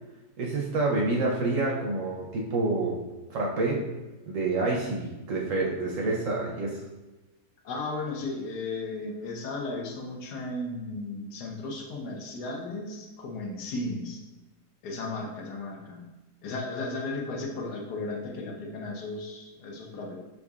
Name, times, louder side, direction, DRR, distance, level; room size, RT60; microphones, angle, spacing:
voice 1, 0.4-3.0 3.3-3.9 4.3-6.8, right 2 dB, 65° right, -2 dB, 0.8 m, -28 dB
voice 2, 7.6-14.2 14.8-16.0 16.4-20.2, left 2 dB, 75° left, 1 dB, 1.3 m, -35 dB
5.4 x 3.7 x 2.3 m, 1.1 s
omnidirectional pair, 1.8 m